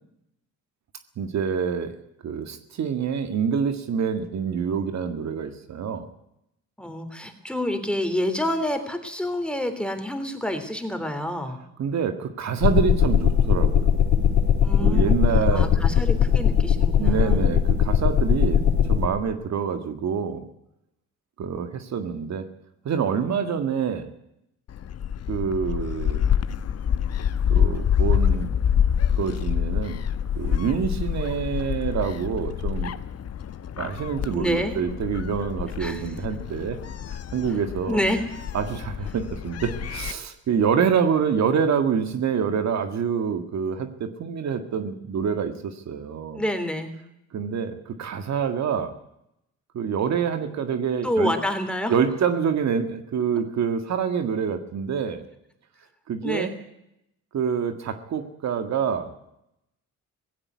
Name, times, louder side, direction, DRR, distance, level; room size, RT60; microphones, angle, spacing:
voice 1, 1.2-2.0 2.2-6.1 11.8-13.9 14.8-15.7 17.0-18.6 18.9-20.4 21.4-22.5 22.9-24.1 25.3-26.3 27.5-28.5 29.2-30.0 30.4-32.9 33.8-36.8 37.1-38.0 38.5-46.4 47.3-48.9 49.7-51.3 51.9-55.2 56.1-56.5 57.3-59.1, right 7 dB, 65° right, 8 dB, 1.8 m, -26 dB
voice 2, 6.8-11.6 14.6-15.1 15.5-17.5 34.3-34.8 35.8-36.1 37.9-38.2 46.3-46.9 51.0-51.9 56.2-56.6, left 1 dB, 5° left, 7 dB, 3.4 m, -28 dB
sound 1, 12.6-19.1, left 8 dB, 80° left, 5.1 m, -20 dB
Gull seagull, 24.7-40.1, left 8 dB, 55° left, 1.2 m, -27 dB
17.5 x 16.0 x 9.5 m, 0.82 s
cardioid pair, 90°, 30 cm